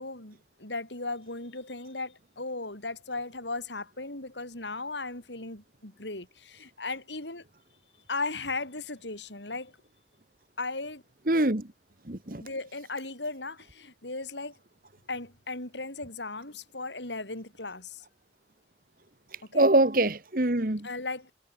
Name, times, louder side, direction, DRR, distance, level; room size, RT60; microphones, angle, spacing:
voice 1, 0.0-7.4 8.1-9.7 10.6-11.0 12.4-14.5 15.1-18.1 19.5-19.7 20.8-21.3, left 3 dB, 85° left, 7.7 m, -36 dB
voice 2, 11.3-11.7 12.1-12.4 19.5-20.9, right 2 dB, 50° right, 1.7 m, -24 dB
head